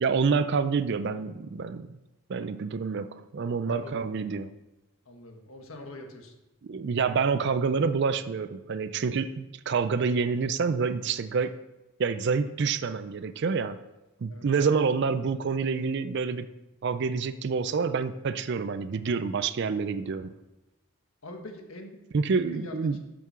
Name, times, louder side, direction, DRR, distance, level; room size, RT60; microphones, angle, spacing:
voice 1, 0.0-2.0 2.3-4.5 6.6-11.6 12.0-13.8 14.2-16.5 16.8-20.3 22.1-23.0, right 5 dB, 50° right, 11 dB, 0.4 m, -27 dB
voice 2, 3.7-4.1 5.0-6.3 14.3-14.5 21.2-22.0 22.3-23.0, left 2 dB, 75° left, 3 dB, 1.5 m, -44 dB
7.6 x 5.8 x 6.8 m, 1.0 s
head